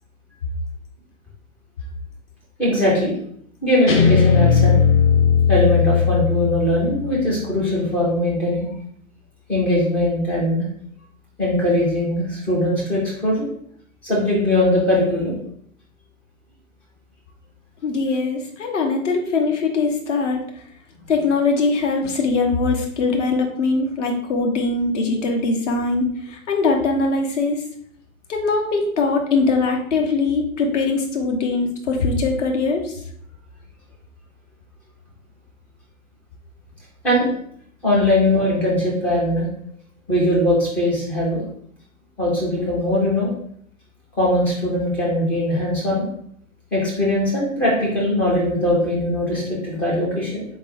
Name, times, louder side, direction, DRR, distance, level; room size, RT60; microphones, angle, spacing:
voice 1, 2.6-3.1 3.6-4.8 5.5-8.7 9.5-10.6 11.4-13.5 14.0-15.4 37.0-37.3 37.8-39.5 40.1-41.4 42.2-43.3 44.2-46.0 46.7-50.5, left 1 dB, 5° left, -5 dB, 0.3 m, -20 dB
Guitar, 3.9-7.1, left 7 dB, 35° left, 0.8 m, -17 dB
voice 2, 17.8-20.4 21.1-27.6 28.3-33.0, left 3 dB, 60° left, 1 dB, 1.1 m, -21 dB
3.9 x 3.7 x 2.6 m, 0.65 s
figure-of-eight pair, 110°, 41 cm